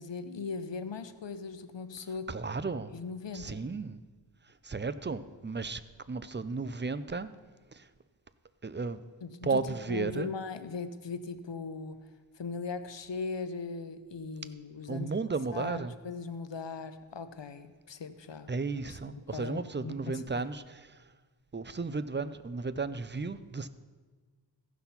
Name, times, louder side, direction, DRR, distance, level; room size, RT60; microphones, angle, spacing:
voice 1, 0.0-2.3 2.9-3.6 9.2-12.0 12.4-15.1 15.5-18.5 18.9-20.5, left 4 dB, 75° left, 11 dB, 0.7 m, -39 dB
voice 2, 2.3-3.0 3.3-4.0 4.4-5.8 6.1-7.3 7.7-7.9 8.6-9.0 9.4-10.3 14.9-15.9 18.5-21.1 21.5-23.7, right 4 dB, 25° right, 13 dB, 0.5 m, -34 dB
15.0 x 5.9 x 5.7 m, 1.4 s
wide cardioid pair, 45°, 43 cm